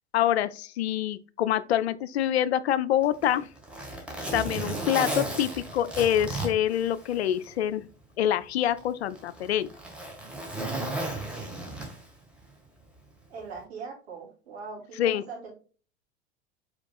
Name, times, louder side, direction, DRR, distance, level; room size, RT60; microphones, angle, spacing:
voice 1, 0.1-3.5 4.3-7.9 8.2-9.7 15.0-15.2, left 11 dB, 65° left, 0.5 m, -26 dB
Zipper (clothing), 3.0-7.5 7.9-8.0 8.8-12.2 13.4-13.6, right 2 dB, 5° right, 1.4 m, -34 dB
voice 2, 13.3-15.5, right 5 dB, 65° right, 2.5 m, -41 dB
5.1 x 4.4 x 2.2 m
figure-of-eight pair, 85°, 34 cm